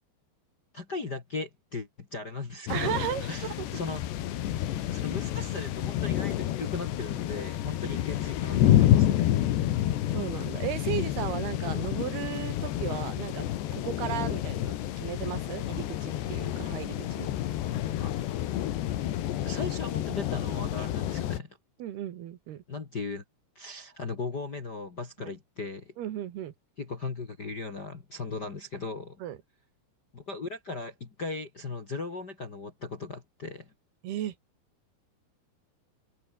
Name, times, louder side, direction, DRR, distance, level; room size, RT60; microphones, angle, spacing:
voice 1, 0.7-4.0 4.9-9.2 17.6-18.3 19.4-21.5 22.7-23.2 23.5-25.9 26.8-29.2 30.1-33.7, left 3 dB, 35° left, 1.7 m, -37 dB
sound 1, 2.7-21.4, left 12 dB, 80° left, 3.8 m, -29 dB
voice 2, 2.7-3.3 3.7-3.8 10.1-17.3 21.8-22.6 26.0-26.5 29.2-29.4 34.0-34.3, right 11 dB, 70° right, 3.4 m, -35 dB
omnidirectional pair, 5.0 m